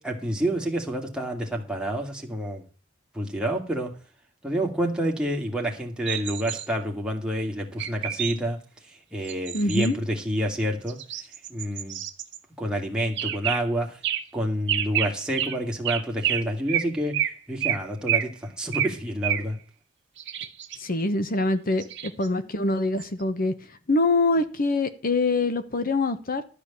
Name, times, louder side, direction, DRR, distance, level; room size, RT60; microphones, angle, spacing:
voice 1, 0.0-2.6 3.1-3.9 4.4-8.6 9.1-11.0 11.5-12.0 12.6-14.0 14.3-19.6, equal, 5° right, 2.4 m, -28 dB
sound 1, 6.1-6.7 7.8-8.3 9.2-9.9 10.9-12.4 13.2-13.6 14.0-14.2 14.7-15.1 15.4-15.6 15.8-16.4 16.7-16.9 17.1-17.3 17.6-17.8 18.1-18.3 18.7-18.9 19.2-19.4 20.2-20.8 21.8-22.3 23.0-23.1, right 11 dB, 65° right, 1.7 m, -28 dB
voice 2, 9.5-10.0 20.8-23.5 23.9-26.4, left 2 dB, 50° left, 1.1 m, -24 dB
13.0 x 5.1 x 8.6 m
head